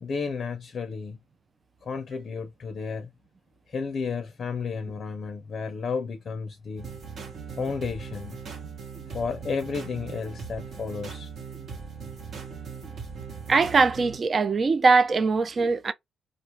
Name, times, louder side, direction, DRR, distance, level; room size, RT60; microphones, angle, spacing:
voice 1, 0.0-1.2 1.8-3.1 3.7-6.9 7.6-8.4 9.1-11.3, left 5 dB, 50° left, 0.5 m, -32 dB
sound 1, 6.8-14.2, right 5 dB, 60° right, 1.0 m, -39 dB
voice 2, 13.5-15.9, right 4 dB, 40° right, 0.4 m, -21 dB
2.4 x 2.2 x 2.8 m
cardioid pair, 90°, 0 cm